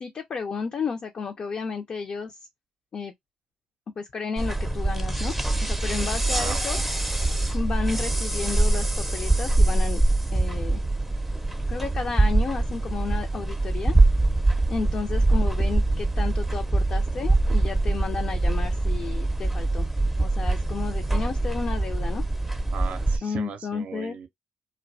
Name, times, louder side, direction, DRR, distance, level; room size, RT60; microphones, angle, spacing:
voice 1, 0.0-2.4 2.9-3.1 4.0-5.3 5.6-6.8 7.5-10.0 10.3-10.8 11.7-13.9 14.7-19.9 20.2-22.2 23.2-24.2, left 5 dB, 50° left, 0.5 m, -32 dB
sound 1, 4.4-23.2, right 2 dB, 5° right, 0.5 m, -24 dB
voice 2, 6.3-6.8 22.7-24.3, right 7 dB, 65° right, 0.5 m, -37 dB
2.3 x 2.1 x 2.6 m
supercardioid pair, 65°, 3 cm